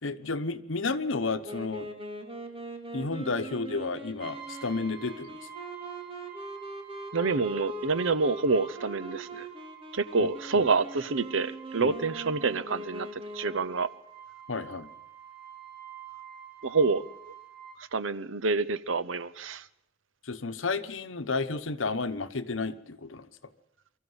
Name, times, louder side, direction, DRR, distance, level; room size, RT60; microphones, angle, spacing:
voice 1, 0.0-1.9 2.9-5.4 10.2-10.3 10.6-10.7 11.8-11.9 14.5-14.9 20.2-23.3, left 3 dB, 85° left, 11 dB, 1.1 m, -32 dB
Wind instrument woodwind instrument, 1.4-13.9, right 1 dB, 30° right, 2.5 m, -41 dB
Brass instrument, 4.2-17.8, right 10 dB, 45° right, 5.5 m, -48 dB
voice 2, 7.1-9.5 9.9-13.9 16.6-17.0 17.9-19.7, right 4 dB, 90° right, 15 dB, 0.8 m, -27 dB
24.0 x 14.0 x 8.1 m, 0.77 s
head